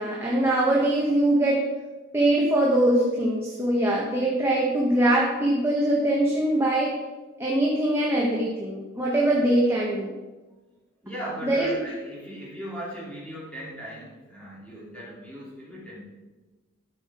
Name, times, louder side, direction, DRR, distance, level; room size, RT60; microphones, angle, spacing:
voice 1, 0.0-1.7 2.1-7.0 7.4-10.1 11.4-11.7, right 1 dB, 10° right, -4 dB, 1.3 m, -22 dB
voice 2, 11.0-16.0, equal, 5° left, -7 dB, 3.2 m, -38 dB
12.5 x 6.6 x 4.4 m, 1.2 s
head